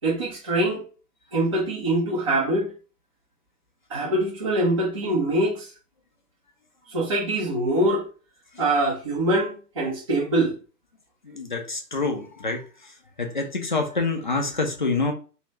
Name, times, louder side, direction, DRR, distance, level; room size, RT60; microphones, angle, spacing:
voice 1, 0.0-0.8 1.3-2.7 3.9-5.7 6.9-8.0 8.6-10.5, right 1 dB, 20° right, 0.5 m, -24 dB
voice 2, 11.2-12.9 13.2-15.1, left 3 dB, 35° left, 0.4 m, -27 dB
2.7 x 2.2 x 3.2 m
figure-of-eight pair, 120°, 48 cm